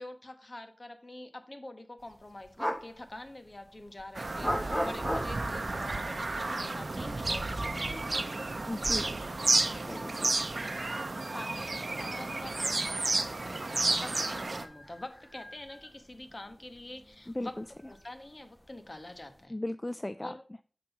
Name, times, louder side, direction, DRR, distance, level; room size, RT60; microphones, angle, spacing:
voice 1, 0.0-8.4 10.6-17.5 17.9-19.5 20.2-20.4, left 1 dB, 50° left, 8 dB, 1.2 m, -46 dB
sound 1, 2.0-19.5, equal, 10° left, 1.0 m, -43 dB
Bird vocalization bird call bird song, 4.1-14.6, right 2 dB, 75° right, 0.6 m, -32 dB
voice 2, 8.7-9.2 9.8-10.5 17.3-17.6 19.5-20.3, left 1 dB, 30° left, 12 dB, 0.3 m, -37 dB
7.5 x 3.9 x 5.7 m, 0.41 s
wide cardioid pair, 45°, 0 cm